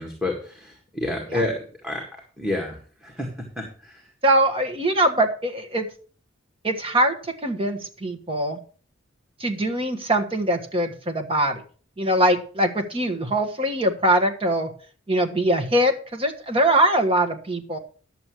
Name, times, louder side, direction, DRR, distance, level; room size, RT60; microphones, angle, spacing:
voice 1, 0.0-1.6 1.8-2.0 2.4-2.8 3.0-3.3 3.6-3.9, left 1 dB, 5° right, -1 dB, 1.8 m, -28 dB
voice 2, 4.2-5.9 6.6-7.1 7.4-8.6 9.4-11.6 12.0-14.7 15.1-17.8, right 1 dB, 30° right, 5 dB, 1.4 m, -22 dB
11.0 x 7.0 x 6.2 m, 0.41 s
head